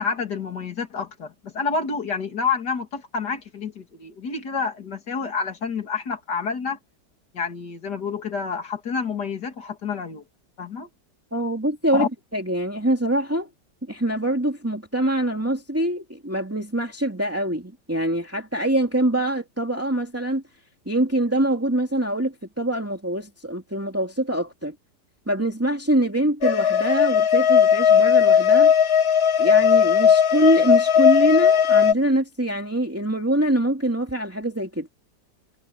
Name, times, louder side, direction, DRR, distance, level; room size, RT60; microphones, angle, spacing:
voice 1, 0.0-6.8 7.3-10.2 10.6-10.9 11.9-12.1, left 5 dB, 70° left, 3.1 m, -28 dB
voice 2, 11.3-12.0 12.3-13.5 13.9-20.4 20.9-24.7 25.3-28.7 29.4-34.9, right 1 dB, 10° right, 2.8 m, -24 dB
sound 1, 26.4-31.9, left 8 dB, 45° left, 1.1 m, -17 dB
omnidirectional pair, 1.9 m